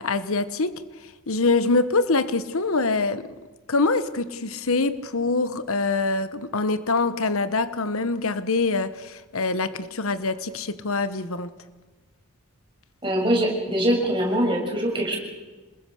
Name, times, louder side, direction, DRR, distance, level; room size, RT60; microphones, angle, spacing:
voice 1, 0.0-3.3 3.7-11.5, left 3 dB, 75° left, 1.1 m, -24 dB
voice 2, 13.0-15.2, equal, 20° right, 6.5 m, -23 dB
27.0 x 21.0 x 6.6 m
head